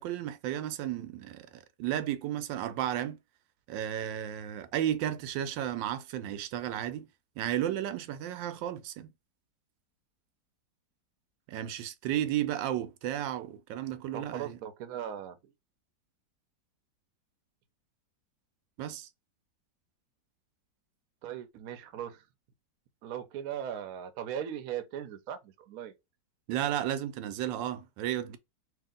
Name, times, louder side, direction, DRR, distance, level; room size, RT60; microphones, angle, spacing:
voice 1, 0.0-3.2 3.7-7.1 7.4-9.1 11.5-14.6 18.8-19.1 26.5-28.4, right 11 dB, 85° right, 1.3 m, -33 dB
voice 2, 14.1-15.5 21.2-22.2 23.0-25.9, right 9 dB, 65° right, 1.0 m, -38 dB
3.1 x 2.8 x 3.7 m
omnidirectional pair, 2.0 m